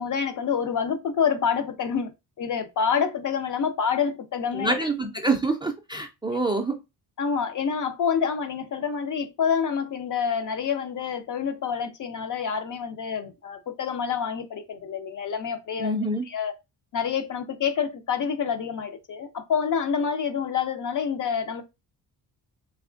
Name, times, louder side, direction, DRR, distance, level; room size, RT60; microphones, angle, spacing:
voice 1, 0.0-4.8 7.2-16.0 16.3-16.5 16.9-21.6, left 7 dB, 50° left, 0.6 m, -27 dB
voice 2, 4.5-6.8 15.8-16.2, right 2 dB, 10° right, 0.3 m, -26 dB
3.4 x 3.0 x 2.4 m
cardioid pair, 130°, 41 cm